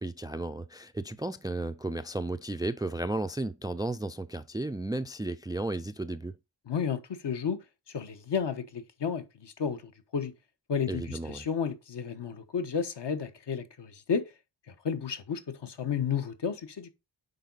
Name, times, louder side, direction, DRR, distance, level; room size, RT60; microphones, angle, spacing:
voice 1, 0.0-6.3 10.9-11.5, right 2 dB, 10° right, 0.3 m, -34 dB
voice 2, 6.7-7.6 7.9-10.3 10.7-14.3 14.7-16.9, left 7 dB, 65° left, 1.2 m, -32 dB
9.3 x 4.0 x 3.9 m
wide cardioid pair, 120°, 44 cm